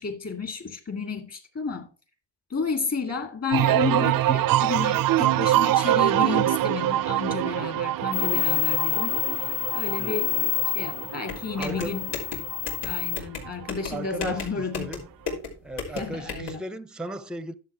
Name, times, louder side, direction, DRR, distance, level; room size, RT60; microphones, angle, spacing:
voice 1, 0.0-1.9 2.5-9.2 9.7-12.1 12.8-14.8 15.9-16.6, left 4 dB, 35° left, 2.2 m, -31 dB
sound 1, 3.5-13.1 13.4-14.0, right 14 dB, 55° right, 0.5 m, -25 dB
sound 2, 8.1-13.2, left 18 dB, 55° left, 0.6 m, -28 dB
sound 3, 11.3-16.5, left 4 dB, 90° left, 4.0 m, -36 dB
voice 2, 11.6-12.0 13.9-15.1 15.6-17.5, right 1 dB, ahead, 0.6 m, -36 dB
11.0 x 7.2 x 4.5 m
cardioid pair, 110°, 41 cm